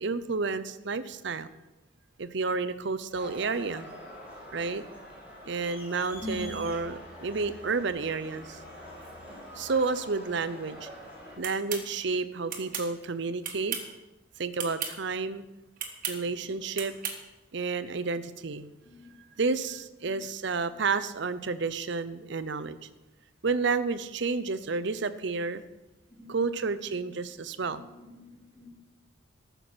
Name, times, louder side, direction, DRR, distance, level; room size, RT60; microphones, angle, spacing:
voice 1, 0.0-1.5 2.2-3.9 4.5-4.8 5.5-8.6 9.6-10.9 11.4-13.8 14.4-15.4 16.1-16.9 17.5-18.7 19.4-22.9 23.4-25.6 26.3-27.8, right 4 dB, 60° right, 13 dB, 0.6 m, -30 dB
Crowd, 3.2-11.3, equal, 10° right, 4.5 m, -45 dB
sound 1, 11.4-11.9 12.5-12.9 13.4-13.9 14.6-14.9 15.8-16.2 16.8-17.2, right 7 dB, 45° right, 1.6 m, -34 dB
voice 2, 18.8-19.2 20.0-20.2 26.1-26.6 27.6-28.7, left 1 dB, 20° left, -2 dB, 3.0 m, -43 dB
14.0 x 6.8 x 6.2 m, 1.0 s
head